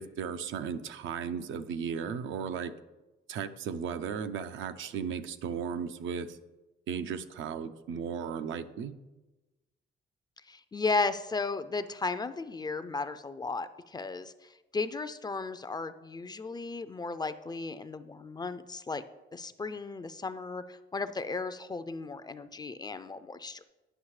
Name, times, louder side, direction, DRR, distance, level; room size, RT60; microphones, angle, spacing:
voice 1, 0.0-2.7 3.3-6.4 6.9-9.0, right 7 dB, 75° right, 10 dB, 0.5 m, -35 dB
voice 2, 10.5-19.0 19.3-23.6, left 3 dB, 20° left, 12 dB, 0.4 m, -35 dB
9.9 x 5.6 x 3.2 m, 1.1 s
cardioid pair, 90°, 20 cm